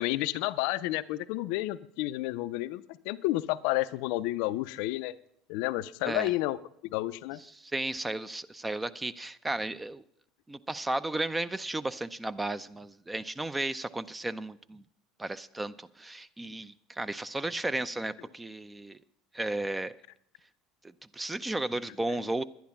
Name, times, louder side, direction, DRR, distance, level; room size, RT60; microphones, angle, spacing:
voice 1, 0.0-5.1 5.5-7.4, left 17 dB, 65° left, 0.4 m, -31 dB
voice 2, 7.5-10.0 10.5-14.8 15.2-19.0 19.3-20.0 21.1-22.4, right 2 dB, 15° right, 0.5 m, -34 dB
11.0 x 10.5 x 5.9 m
hypercardioid pair, 75°, 0 cm